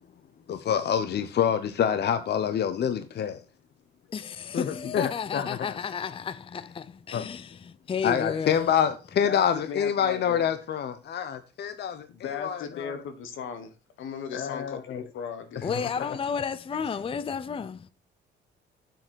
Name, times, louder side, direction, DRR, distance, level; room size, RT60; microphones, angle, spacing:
voice 1, 0.5-3.4 4.5-5.8 7.1-7.3 8.0-13.0 14.3-15.0 15.6-16.2, left 8 dB, 60° left, 0.8 m, -27 dB
voice 2, 4.1-7.5 7.9-8.6 15.6-17.8, left 6 dB, 25° left, 0.5 m, -32 dB
voice 3, 9.2-10.5 12.1-13.7 14.0-16.2, left 6 dB, 80° left, 1.5 m, -37 dB
7.8 x 6.7 x 4.6 m
cardioid pair, 90°, 20 cm